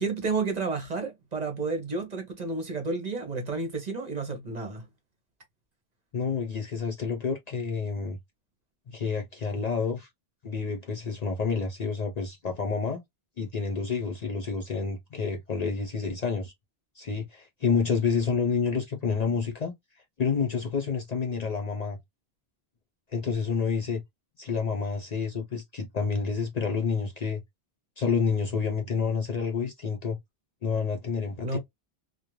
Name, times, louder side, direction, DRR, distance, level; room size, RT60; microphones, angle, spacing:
voice 1, 0.0-4.8 31.4-31.6, right 3 dB, 45° right, 0.8 m, -31 dB
voice 2, 6.1-8.2 8.9-10.1 10.4-13.0 13.4-16.5 17.0-19.7 20.2-22.0 23.1-24.0 24.4-27.4 28.0-30.2 30.6-31.6, left 5 dB, 50° left, 0.5 m, -29 dB
2.3 x 2.1 x 2.9 m
omnidirectional pair, 1.0 m